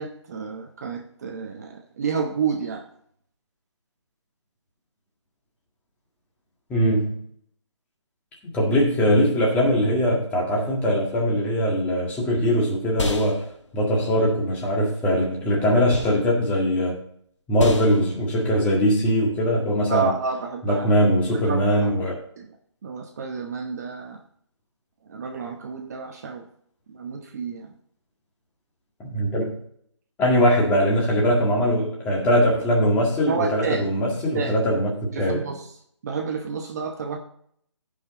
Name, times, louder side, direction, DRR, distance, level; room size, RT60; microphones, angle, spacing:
voice 1, 0.0-2.9 19.9-20.9 21.3-21.9 22.4-22.5 22.8-24.2 25.0-26.5 26.9-27.7 33.3-33.9 34.3-34.6 35.1-35.7 36.0-37.2, right 5 dB, 35° right, 3 dB, 0.9 m, -30 dB
voice 2, 6.7-7.2 8.4-13.4 13.7-17.0 17.5-20.1 20.6-22.1 29.0-29.6 30.2-35.4, equal, 10° left, -2 dB, 1.8 m, -21 dB
sound 1, 11.6-21.2, left 2 dB, 75° left, 2.0 m, -36 dB
15.0 x 5.4 x 3.7 m, 0.66 s
hypercardioid pair, 160°, 15 cm